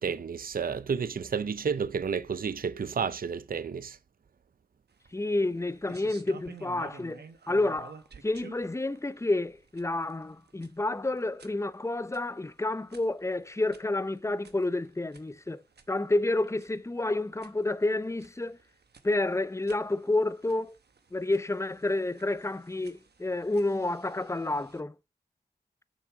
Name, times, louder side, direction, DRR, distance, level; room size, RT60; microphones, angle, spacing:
voice 1, 0.0-4.0, right 6 dB, 55° right, 0.6 m, -31 dB
sound 1, 4.9-24.8, right 5 dB, 70° right, 1.1 m, -54 dB
voice 2, 5.1-8.0 8.2-15.6 15.9-18.6 19.0-20.8 21.1-24.9, left 2 dB, 15° left, 0.6 m, -29 dB
6.8 x 6.2 x 4.8 m
cardioid pair, 40°, 18 cm